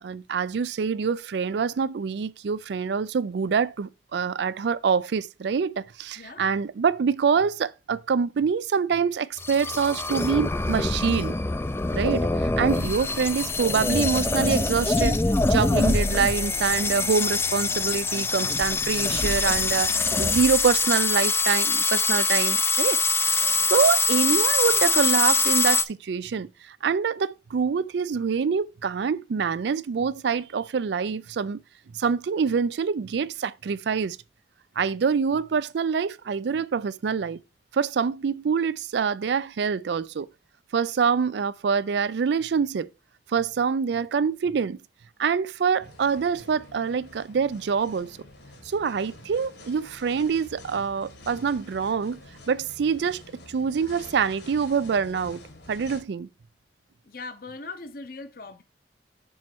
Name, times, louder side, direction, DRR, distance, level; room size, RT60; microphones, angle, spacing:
voice 1, 0.0-11.3 11.9-15.2 15.4-23.4 23.7-31.6 31.9-34.2 34.8-37.4 37.7-40.3 40.7-42.9 43.3-44.8 45.2-48.2 48.7-52.2 52.5-53.2 53.5-55.4 55.7-56.3, right 6 dB, 70° right, 0.4 m, -25 dB
voice 2, 6.2-6.5 12.7-13.2 23.2-23.8 57.0-58.6, left 3 dB, 50° left, 0.7 m, -41 dB
sound 1, 9.4-25.8, left 3 dB, 15° left, 0.3 m, -24 dB
sound 2, 45.8-56.0, left 2 dB, 65° left, 1.5 m, -48 dB
6.3 x 4.2 x 4.5 m
head